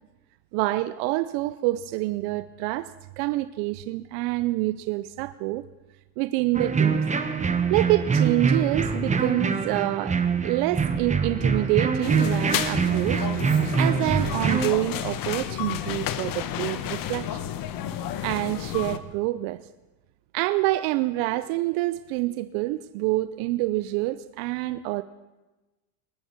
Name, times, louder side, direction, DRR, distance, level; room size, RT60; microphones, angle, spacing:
voice 1, 0.5-5.6 6.2-7.0 7.7-17.4 18.2-19.6 20.3-25.0, right 18 dB, 70° right, 0.6 m, -27 dB
sound 1, 6.5-14.7, right 5 dB, 15° right, 1.0 m, -24 dB
sound 2, 12.0-19.0, left 10 dB, 50° left, 1.1 m, -31 dB
19.5 x 9.9 x 5.8 m
supercardioid pair, 105°, 44 cm